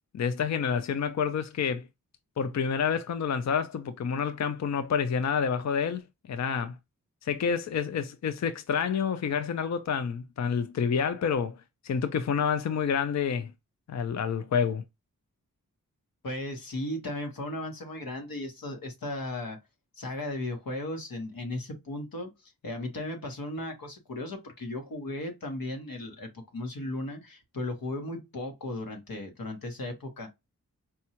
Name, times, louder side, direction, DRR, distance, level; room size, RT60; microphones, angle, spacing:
voice 1, 0.1-1.9 2.4-6.0 6.3-6.8 7.2-13.5 13.9-14.8, left 6 dB, 55° left, 0.4 m, -28 dB
voice 2, 16.2-19.6 20.0-30.3, left 1 dB, 90° left, 1.1 m, -36 dB
4.3 x 2.3 x 2.8 m
wide cardioid pair, 75°, 34 cm